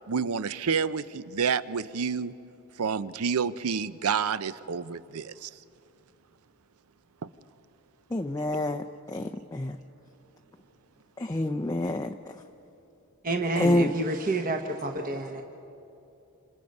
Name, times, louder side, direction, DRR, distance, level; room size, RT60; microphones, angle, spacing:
voice 1, 0.1-2.3 2.8-5.5, right 6 dB, 80° right, 0.6 m, -29 dB
voice 2, 8.1-9.8 11.2-12.3 13.6-13.9, left 1 dB, 15° left, 0.5 m, -28 dB
voice 3, 13.2-15.4, right 2 dB, 40° right, 1.0 m, -29 dB
28.0 x 27.0 x 5.4 m
head